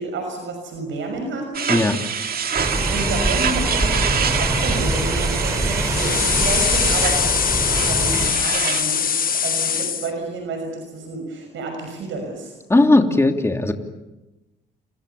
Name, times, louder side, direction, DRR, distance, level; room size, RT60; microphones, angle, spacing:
voice 1, 0.0-1.7 2.9-12.6, right 3 dB, 75° right, 4 dB, 6.2 m, -30 dB
sound 1, 1.5-8.8, right 6 dB, 50° right, 2.3 m, -26 dB
sound 2, 2.5-8.3, right 1 dB, 15° right, 5.4 m, -24 dB
Smoke Machine Blast Long, 5.9-10.1, left 7 dB, 45° left, 1.3 m, -22 dB
voice 2, 12.7-13.7, left 2 dB, 15° left, 4 dB, 2.9 m, -17 dB
30.0 x 25.0 x 7.0 m, 1.0 s
cardioid pair, 90°, 20 cm